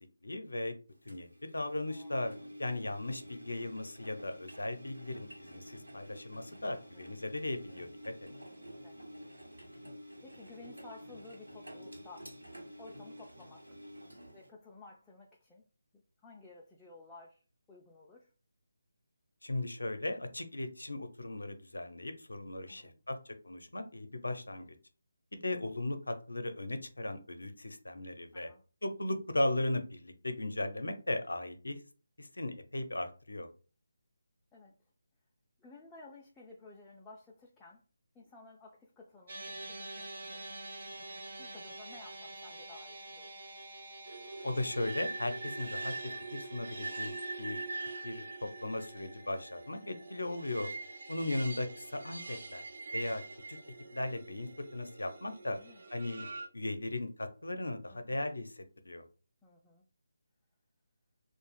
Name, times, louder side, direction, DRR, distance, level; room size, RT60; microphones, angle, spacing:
voice 1, 0.2-0.7 1.1-2.3 2.6-8.1 19.4-24.7 25.3-28.5 28.8-31.8 32.2-33.5 44.4-47.6 48.0-50.7 51.1-52.7 52.9-53.2 53.5-53.6 53.9-55.6 55.9-56.3 56.5-59.0, left 1 dB, 80° left, 8 dB, 0.5 m, -37 dB
Engine, 1.1-14.5, equal, 85° right, 1.0 m, -50 dB
voice 2, 1.9-2.2 6.7-7.1 8.6-9.0 9.5-9.8 10.2-12.3 12.8-13.8 14.3-15.7 16.2-17.4 17.7-18.3 22.7-23.1 25.5-25.6 28.3-28.6 34.5-34.8 35.6-37.8 38.1-40.4 41.4-43.5 51.3-51.8 55.5-55.8 57.9-58.2 59.4-59.8, left 3 dB, 10° left, -3 dB, 0.3 m, -55 dB
sound 1, 39.3-51.7, right 2 dB, 50° right, 0.9 m, -49 dB
sound 2, 44.1-56.5, right 3 dB, 65° right, 0.5 m, -43 dB
2.4 x 2.1 x 3.2 m, 0.37 s
figure-of-eight pair, 155°, 0 cm